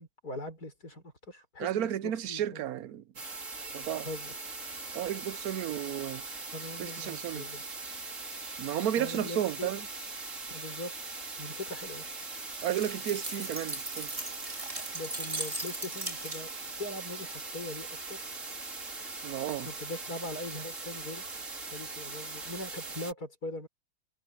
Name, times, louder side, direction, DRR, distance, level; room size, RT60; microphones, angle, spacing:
voice 1, 0.0-2.6 4.0-4.4 6.5-7.6 8.4-8.5 9.0-9.7 10.5-10.9 11.4-12.1 14.9-16.5 16.8-18.2 19.6-21.2 21.7-23.7, left 1 dB, 85° left, 6.5 m, -41 dB
voice 2, 1.6-3.0 3.7-4.1 4.9-6.2 6.8-7.5 8.6-9.9 12.6-14.1 19.2-19.7, right 11 dB, 75° right, 1.2 m, -33 dB
sound 1, 3.2-23.1, right 3 dB, 55° right, 3.3 m, -41 dB
sound 2, 12.5-16.7, right 2 dB, 20° right, 2.2 m, -39 dB
omnidirectional pair, 1.6 m